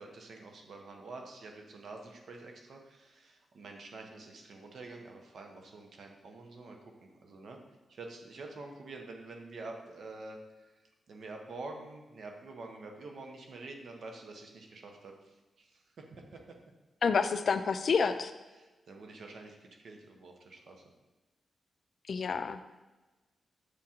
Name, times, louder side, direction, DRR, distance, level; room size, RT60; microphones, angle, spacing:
voice 1, 0.0-7.6 7.9-10.7 11.1-16.6 18.5-20.8, right 3 dB, 70° right, 2 dB, 1.0 m, -47 dB
voice 2, 17.0-18.3 22.1-22.6, left 5 dB, 60° left, 11 dB, 0.4 m, -28 dB
6.8 x 3.7 x 4.4 m, 1.1 s
cardioid pair, 90°, 0 cm